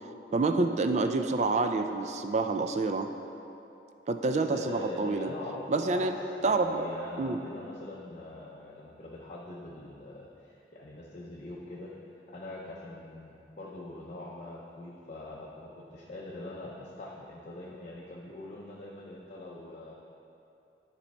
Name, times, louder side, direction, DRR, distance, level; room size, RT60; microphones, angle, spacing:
voice 1, 0.3-3.1 4.1-5.3 5.7-6.2 6.4-6.9 7.2-7.4, right 3 dB, 40° right, 6 dB, 0.3 m, -27 dB
voice 2, 4.3-6.1 6.4-12.0 12.3-19.9, left 2 dB, 40° left, -4 dB, 0.6 m, -43 dB
9.8 x 4.2 x 4.5 m, 2.8 s
head